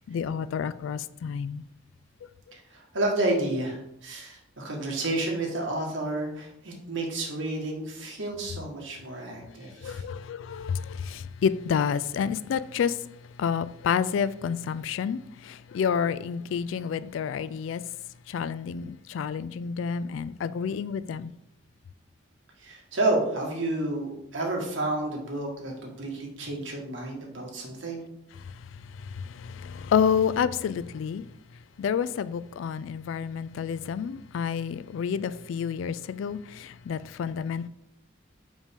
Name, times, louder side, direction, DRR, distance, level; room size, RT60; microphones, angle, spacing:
voice 1, 0.0-1.6 9.8-13.0 13.4-17.8 18.3-21.3 29.1-31.2 31.8-37.7, left 7 dB, 80° left, 0.3 m, -29 dB
voice 2, 2.7-10.0 22.6-28.0, right 2 dB, 75° right, 1.5 m, -30 dB
5.2 x 5.2 x 3.6 m
head